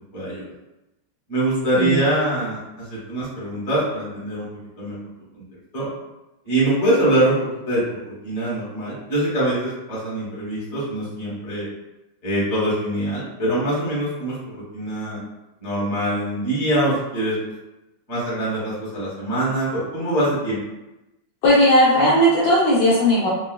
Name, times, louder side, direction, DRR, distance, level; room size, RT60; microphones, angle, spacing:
voice 1, 0.1-0.5 1.3-4.5 4.8-5.0 5.3-5.4 5.7-5.9 6.4-11.7 12.2-15.2 15.6-17.3 18.1-20.6, right 1 dB, 50° left, -7 dB, 1.6 m, -23 dB
voice 2, 21.4-23.3, equal, 75° left, -7 dB, 1.3 m, -16 dB
3.9 x 2.2 x 2.2 m, 0.97 s
omnidirectional pair, 2.1 m